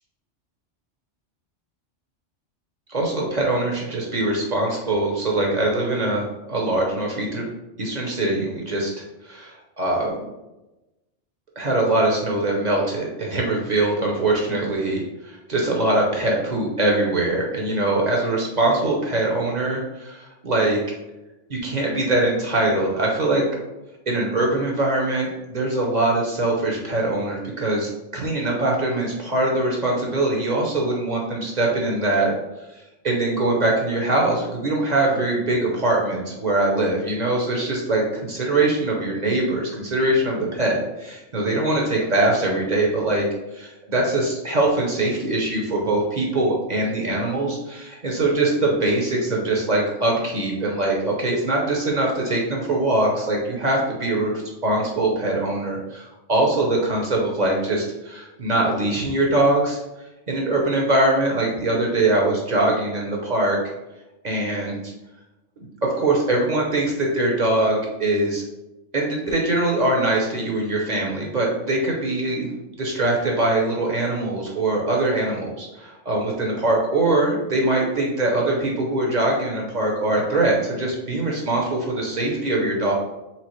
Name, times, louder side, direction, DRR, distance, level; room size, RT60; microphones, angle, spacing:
voice 1, 2.9-7.5 7.8-8.9 9.2-10.2 11.6-20.8 21.5-23.4 24.1-32.3 33.0-43.2 43.5-54.3 54.6-59.8 60.3-63.6 64.2-64.8 65.6-68.4 68.9-72.5 72.8-82.9, right 2 dB, 40° right, -2 dB, 0.8 m, -22 dB
4.4 x 3.4 x 3.1 m, 0.98 s
omnidirectional pair, 1.2 m